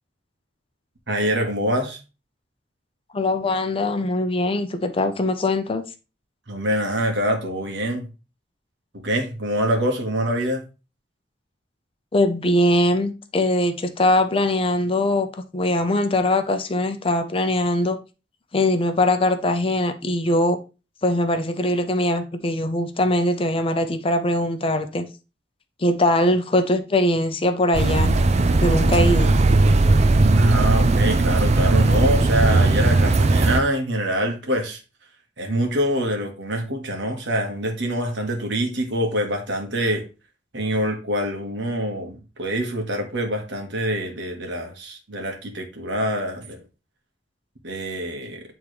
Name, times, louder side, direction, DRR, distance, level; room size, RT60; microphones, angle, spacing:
voice 1, 1.1-2.0 6.5-8.1 9.0-10.6 30.4-34.8 35.4-40.0 40.5-46.6 47.6-48.4, equal, 85° right, 1.5 m, -25 dB
voice 2, 3.1-5.8 12.1-15.3 15.5-18.0 18.5-20.6 21.0-25.1 25.8-28.1 28.6-29.4, left 1 dB, 30° left, 0.6 m, -21 dB
sound 1, 27.7-33.6, right 2 dB, 40° right, 0.4 m, -17 dB
8.7 x 3.6 x 3.1 m
head